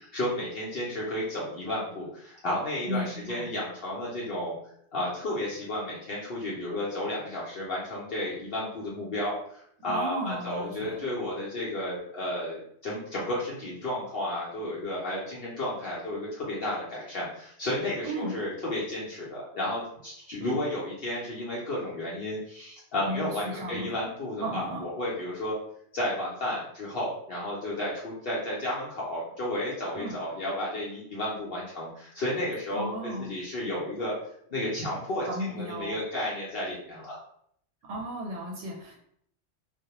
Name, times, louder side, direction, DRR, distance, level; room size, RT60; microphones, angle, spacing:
voice 1, 0.1-4.6 4.9-25.6 25.9-34.1 34.5-37.2, left 1 dB, 60° left, -6 dB, 0.7 m, -32 dB
voice 2, 2.8-3.5 9.8-11.0 18.0-18.3 20.4-20.6 23.0-24.0 24.4-24.8 29.9-30.2 32.7-33.3 35.2-36.0 37.9-38.9, right 1 dB, 85° right, -2 dB, 1.0 m, -34 dB
2.2 x 2.1 x 2.8 m, 0.67 s
omnidirectional pair, 1.3 m